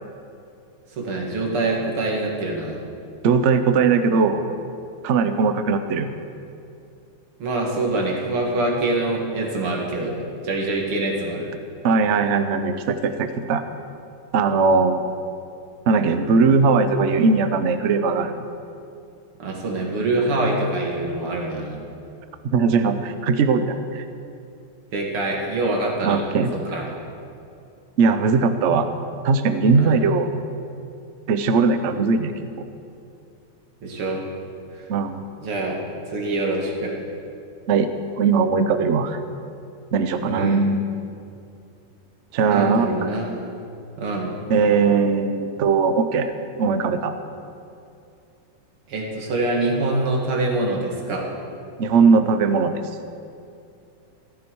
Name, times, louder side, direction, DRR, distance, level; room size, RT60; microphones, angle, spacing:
voice 1, 0.9-2.8 7.4-10.2 10.4-11.5 19.4-21.8 24.9-26.2 26.6-26.9 29.7-30.0 33.8-34.2 34.7-34.8 35.4-35.8 36.1-37.0 40.3-40.6 42.5-43.5 44.0-44.3 48.9-51.3, right 2 dB, 85° right, 0 dB, 2.8 m, -25 dB
voice 2, 3.2-4.5 5.0-6.1 11.8-13.6 14.3-15.1 15.9-18.5 22.4-24.0 26.0-26.5 28.0-28.9 29.2-30.3 31.3-32.7 34.9-35.2 37.7-37.9 38.2-39.2 39.9-40.8 42.3-42.9 44.5-46.3 46.6-47.1 51.8-52.8, right 4 dB, 65° right, 9 dB, 0.7 m, -19 dB
15.0 x 14.5 x 4.7 m, 2.5 s
omnidirectional pair, 2.3 m